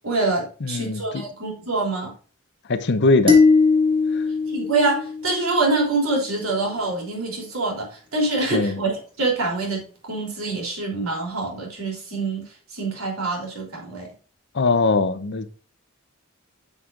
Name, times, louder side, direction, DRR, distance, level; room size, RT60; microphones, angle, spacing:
voice 1, 0.0-2.1 4.5-8.9 9.2-12.4 12.7-14.1, right 3 dB, 85° right, 3.2 m, -25 dB
voice 2, 0.6-1.2 2.7-3.4 4.1-4.2 8.5-8.8 14.5-15.5, left 3 dB, 55° left, 0.7 m, -21 dB
sound 1, 3.3-5.7, left 4 dB, 25° right, 1.7 m, -19 dB
9.9 x 6.1 x 2.5 m
head